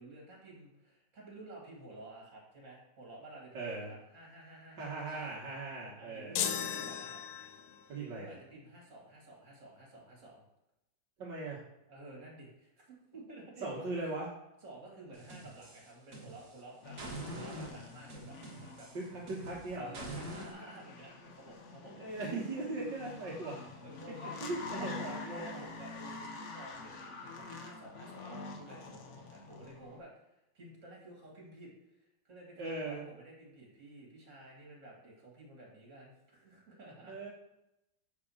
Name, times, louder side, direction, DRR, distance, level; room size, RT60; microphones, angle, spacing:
voice 1, 0.0-5.3 6.0-7.2 7.5-7.6 8.0-10.4 11.9-13.9 14.6-18.9 19.8-22.4 23.3-23.5 23.8-37.2, right 2 dB, 40° right, -2 dB, 2.6 m, -52 dB
voice 2, 3.5-3.9 4.8-6.4 7.9-8.3 11.2-11.6 13.6-14.3 18.9-19.9 21.9-23.6 24.5-25.6 32.6-33.1 37.0-37.3, right 2 dB, 70° right, -5 dB, 2.1 m, -39 dB
sound 1, 6.3-7.8, left 9 dB, 70° left, 1.1 m, -36 dB
sound 2, 15.1-16.6 17.0-20.5, right 1 dB, 55° right, 2.1 m, -45 dB
sound 3, 16.8-30.0, left 3 dB, 50° left, 1.0 m, -46 dB
5.2 x 4.9 x 6.4 m, 0.89 s
omnidirectional pair, 2.0 m